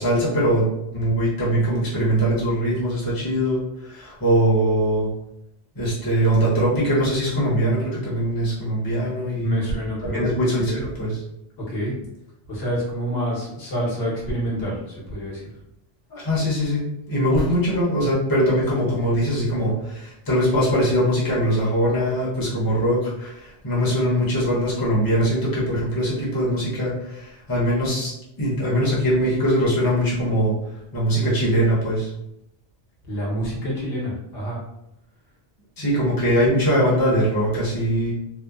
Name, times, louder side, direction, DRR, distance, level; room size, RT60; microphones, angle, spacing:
voice 1, 0.0-5.1 5.7-9.5 10.1-10.7 11.0-11.1 16.1-30.5 30.9-32.1 35.8-38.1, equal, 25° left, -7 dB, 0.7 m, -22 dB
voice 2, 9.4-10.3 10.6-10.8 11.6-11.9 12.5-15.4 33.1-34.6, equal, 70° left, -5 dB, 1.1 m, -27 dB
2.8 x 2.1 x 2.3 m, 0.83 s
omnidirectional pair, 1.1 m